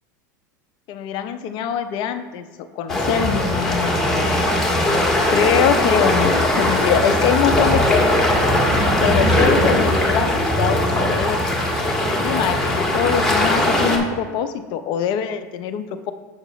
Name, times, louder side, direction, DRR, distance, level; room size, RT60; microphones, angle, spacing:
voice 1, 0.9-2.5 2.7-4.0 5.3-8.1 9.0-11.5 12.2-16.1, left 8 dB, 50° left, 9 dB, 0.6 m, -23 dB
sound 1, 2.9-14.0, left 1 dB, 5° left, 1.7 m, -19 dB
7.2 x 6.5 x 3.1 m, 1.3 s
hypercardioid pair, 100°, 10 cm